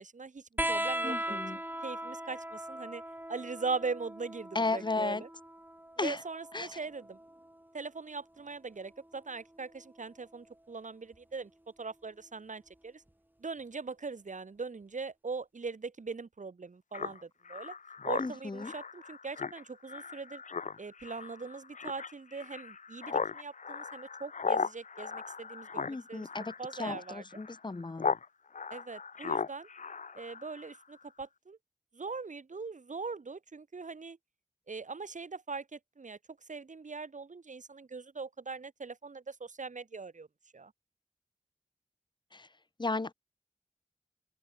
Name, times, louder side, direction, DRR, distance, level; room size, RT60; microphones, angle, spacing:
voice 1, 0.0-3.0 3.3-5.3 6.0-7.2 7.7-11.5 11.8-13.0 13.4-17.8 18.0-20.4 20.8-26.3 26.6-27.2 28.7-29.7 30.1-31.6 31.9-34.2 34.7-36.2 36.5-40.3 40.5-40.7, right 4 dB, 85° right, 2.6 m, -41 dB
sound 1, 0.6-7.7 9.0-9.8 11.1-11.2, right 1 dB, 15° right, 4.0 m, -39 dB
voice 2, 1.0-1.6 4.5-5.2 6.0-6.2 6.5-6.7 18.2-18.7 25.9-26.5 26.8-28.1 42.3-42.5 42.8-43.1, left 3 dB, 40° left, 0.7 m, -34 dB
Speech synthesizer, 16.9-28.3 28.5-30.8, left 5 dB, 85° left, 0.7 m, -37 dB
open air
wide cardioid pair, 60°, 13 cm